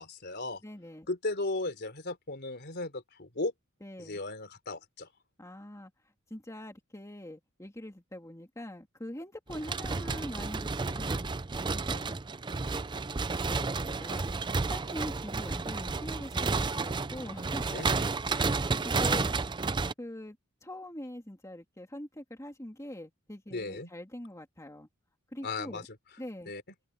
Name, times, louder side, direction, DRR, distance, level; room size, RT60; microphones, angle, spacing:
voice 1, 0.0-0.6 1.1-3.5 4.0-5.1 17.7-18.2 23.5-23.9 25.4-25.8 26.5-26.6, left 2 dB, 50° left, 3.7 m, -36 dB
voice 2, 0.6-1.1 3.8-4.2 5.4-5.9 6.3-11.2 11.7-12.2 13.4-14.3 14.6-17.7 18.3-19.3 20.0-24.9 25.3-25.9 26.2-26.5, left 1 dB, 15° left, 2.5 m, -43 dB
sound 1, 9.5-19.9, right 4 dB, 20° right, 0.5 m, -31 dB
head